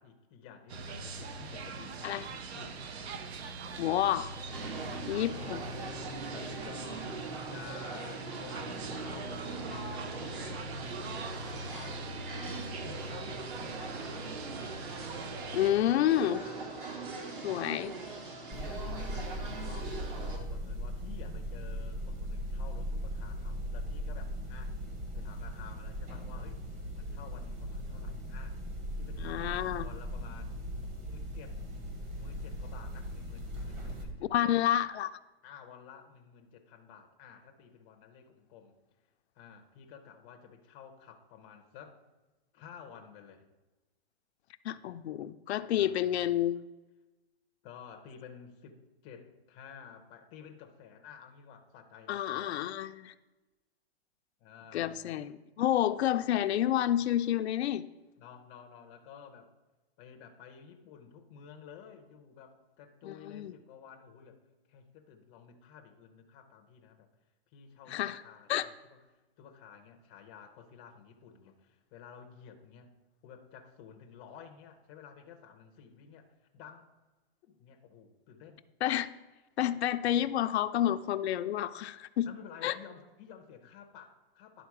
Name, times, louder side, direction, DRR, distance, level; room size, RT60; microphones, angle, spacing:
voice 1, 0.0-2.8 4.6-5.6 6.3-7.2 7.5-10.7 11.0-12.3 12.8-14.4 16.3-16.6 17.0-17.7 18.5-24.8 25.1-26.6 27.0-28.6 29.0-30.6 31.0-31.6 32.2-34.6 35.4-38.7 39.4-42.0 42.5-43.4 45.8-46.2 47.6-52.5 54.4-54.9 58.2-59.5 60.0-67.1 67.5-69.0 69.4-72.9 73.2-76.3 76.5-76.9 77.4-78.6 82.3-84.7, left 7 dB, 20° left, 5 dB, 0.5 m, -52 dB
sound 1, 0.7-15.7, right 3 dB, 75° right, 0.8 m, -42 dB
voice 2, 3.8-4.3 5.1-5.6 15.5-16.4 17.4-17.9 29.2-29.9 34.3-35.2 44.6-46.6 52.1-53.1 54.7-57.8 63.0-63.5 67.9-68.2 68.5-68.7 78.8-79.1 79.6-82.3 82.6-82.8, left 11 dB, 85° left, 10 dB, 0.5 m, -29 dB
sound 2, 4.5-20.4, right 3 dB, 55° right, 1.6 m, -42 dB
sound 3, 18.5-34.0, equal, 25° right, 1.1 m, -38 dB
11.0 x 3.9 x 4.7 m, 1.1 s
hypercardioid pair, 155°, 32 cm